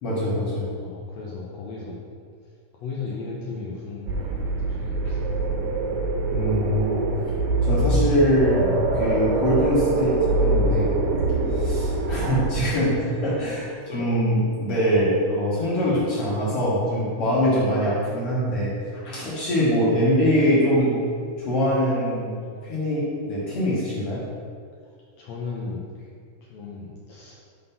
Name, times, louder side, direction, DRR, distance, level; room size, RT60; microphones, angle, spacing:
voice 1, 0.0-0.7 5.1-5.2 6.3-7.0 7.6-8.7 8.9-11.0 11.5-18.7 19.1-21.0 21.4-22.4 22.6-24.3, equal, 55° left, -8 dB, 2.0 m, -23 dB
voice 2, 0.8-2.0 2.4-5.2 11.5-12.1 13.9-14.0 15.6-16.0 23.0-23.1 25.2-25.9 26.4-27.4, left 4 dB, 75° left, -5 dB, 1.6 m, -36 dB
sound 1, 4.1-12.7, right 2 dB, 80° right, 2.2 m, -24 dB
5.6 x 4.0 x 5.4 m, 2.2 s
omnidirectional pair, 3.8 m